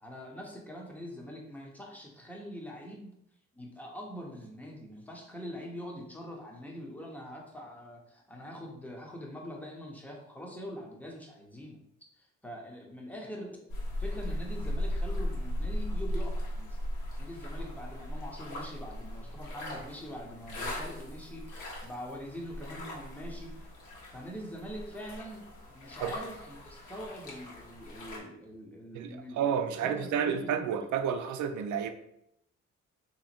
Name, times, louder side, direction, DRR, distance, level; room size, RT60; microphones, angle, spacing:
voice 1, 0.0-3.1 3.5-11.8 12.2-13.7 14.0-16.8 17.2-23.5 24.1-29.5 29.8-30.6, equal, 5° left, 0 dB, 0.8 m, -43 dB
sound 1, 13.7-28.2, left 1 dB, 85° left, 1.4 m, -38 dB
voice 2, 28.9-31.9, right 7 dB, 80° right, 9 dB, 0.5 m, -31 dB
3.6 x 2.9 x 4.3 m, 0.77 s
cardioid pair, 140°, 29 cm